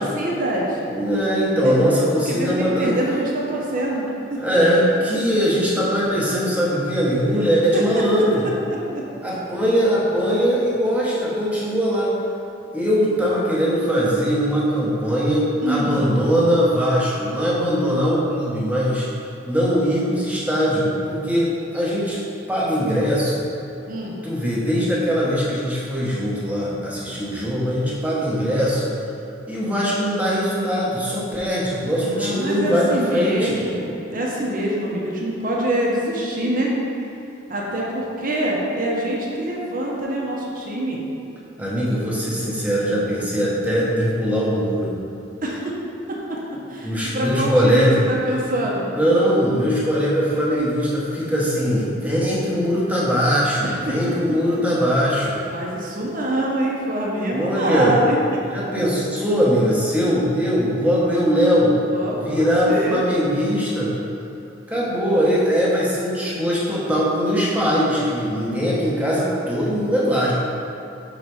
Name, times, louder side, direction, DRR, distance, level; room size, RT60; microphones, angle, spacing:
voice 1, 0.0-0.8 1.6-1.7 2.3-4.4 7.7-8.0 8.7-9.0 15.6-16.0 23.9-24.2 32.1-36.8 37.5-41.0 45.4-45.7 46.1-46.4 46.7-48.9 53.6-53.9 55.5-58.2 61.8-63.0, right 1 dB, 45° right, -3 dB, 0.8 m, -25 dB
voice 2, 0.8-2.9 4.4-8.4 9.2-12.1 12.7-19.1 19.5-22.2 22.5-23.4 24.2-28.9 29.5-33.6 41.6-44.9 46.8-48.0 48.9-55.4 57.3-57.9 58.5-61.8 62.1-63.9 64.7-70.3, equal, 5° right, -6 dB, 1.0 m, -21 dB
5.6 x 3.9 x 4.7 m, 2.8 s
head